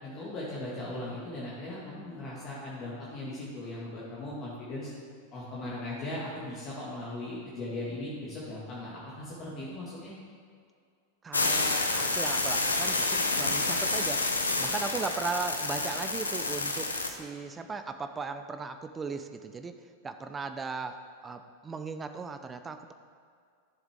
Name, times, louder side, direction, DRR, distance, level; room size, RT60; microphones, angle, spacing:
voice 1, 0.0-4.9 5.3-10.1, left 1 dB, 30° left, -7 dB, 1.9 m, -38 dB
voice 2, 11.2-14.2 14.6-19.8 20.0-21.0 21.2-22.9, right 4 dB, 15° right, 8 dB, 0.4 m, -37 dB
sound 1, 11.3-17.1, left 2 dB, 80° left, 0.8 m, -29 dB
12.5 x 7.1 x 3.6 m, 2.2 s
figure-of-eight pair, 90°, 0 cm